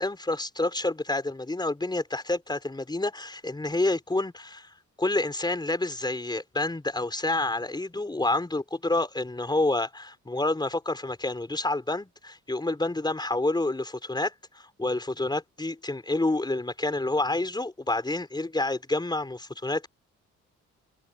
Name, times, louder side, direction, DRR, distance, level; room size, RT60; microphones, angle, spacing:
voice 1, 0.0-19.9, left 2 dB, 15° left, 5.0 m, -28 dB
cardioid pair, 90°, 30 cm